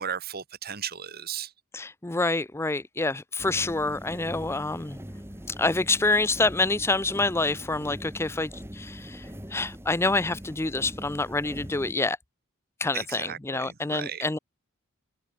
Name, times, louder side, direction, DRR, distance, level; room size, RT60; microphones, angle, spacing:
voice 1, 0.0-1.5 12.9-14.3, right 8 dB, 45° right, 1.6 m, -35 dB
voice 2, 1.7-5.0 5.6-12.2 12.8-14.4, left 3 dB, 10° left, 0.5 m, -27 dB
sound 1, 3.4-11.9, equal, 10° right, 3.5 m, -42 dB
open air
head